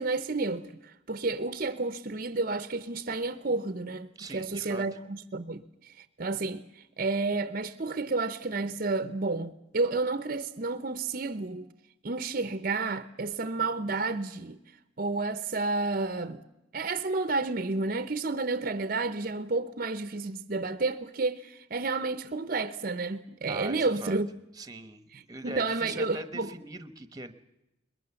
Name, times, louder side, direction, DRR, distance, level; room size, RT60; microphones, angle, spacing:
voice 1, 0.0-11.7 12.0-14.6 15.0-16.4 16.7-24.3 25.1-26.5, right 3 dB, 45° right, 0.8 m, -31 dB
voice 2, 4.2-4.8 23.5-24.2 24.6-25.0 25.3-27.3, right 2 dB, 20° right, 1.0 m, -41 dB
22.0 x 21.5 x 7.0 m
head